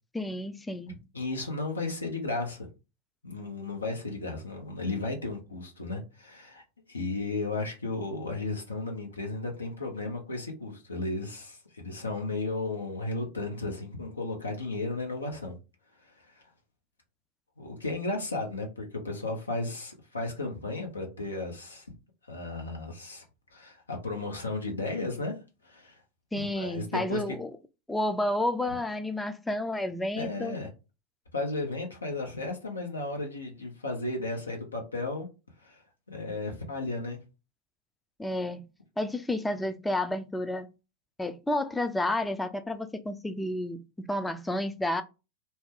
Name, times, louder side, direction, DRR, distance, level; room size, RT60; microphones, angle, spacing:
voice 1, 0.1-1.0 26.3-27.5 27.9-30.6 38.2-38.7 39.0-40.7 41.2-45.0, left 1 dB, 10° left, 0.4 m, -31 dB
voice 2, 1.1-2.7 3.2-6.6 6.9-15.6 16.0-16.4 17.6-21.9 22.3-23.2 23.5-25.3 25.6-26.0 26.3-27.2 30.2-30.7 31.3-35.3 35.6-35.8 36.1-37.2, left 2 dB, 85° left, 1.0 m, -34 dB
2.7 x 2.2 x 3.6 m
figure-of-eight pair, 90°, 0 cm